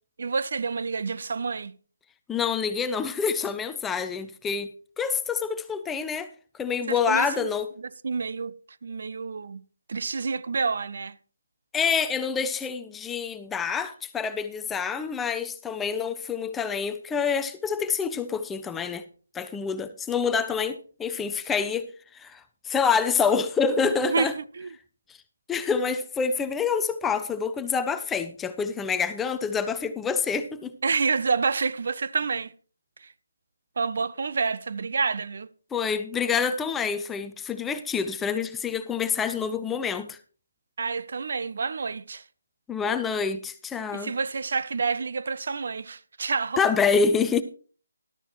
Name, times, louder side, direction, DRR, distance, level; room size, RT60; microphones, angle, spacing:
voice 1, 0.2-1.7 6.9-7.5 8.0-9.6 9.9-11.2 23.8-24.7 30.8-32.5 33.0-33.1 33.8-35.5 40.8-42.2 43.9-46.6, right 5 dB, 55° right, 0.5 m, -28 dB
voice 2, 2.3-4.7 5.0-6.3 6.6-7.7 11.7-19.0 19.3-21.9 22.1-24.3 25.5-30.7 35.7-40.2 42.7-44.1 46.6-47.4, left 6 dB, 10° left, 0.5 m, -27 dB
13.5 x 12.0 x 3.0 m
figure-of-eight pair, 155°, 0 cm